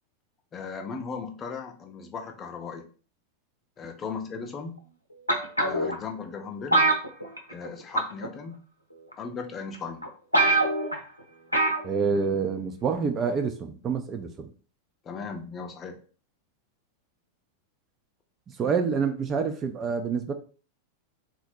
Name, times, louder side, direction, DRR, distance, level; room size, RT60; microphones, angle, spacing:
voice 1, 0.5-2.9 3.8-4.8 5.6-6.8 7.5-8.6 9.2-10.1 15.0-16.0 18.6-18.7, left 5 dB, 25° left, 3 dB, 0.6 m, -37 dB
sound 1, 5.3-5.9 6.7-7.7 7.9-8.3 9.1-9.2 9.7-9.8 10.0-10.1 10.3-11.0 11.5-11.8 12.1-12.2, right 2 dB, 85° left, 0.7 m, -23 dB
voice 2, 11.8-14.5 18.6-20.3, right 5 dB, 25° right, 5 dB, 0.5 m, -27 dB
3.9 x 2.1 x 4.3 m, 0.39 s
figure-of-eight pair, 90°, 0 cm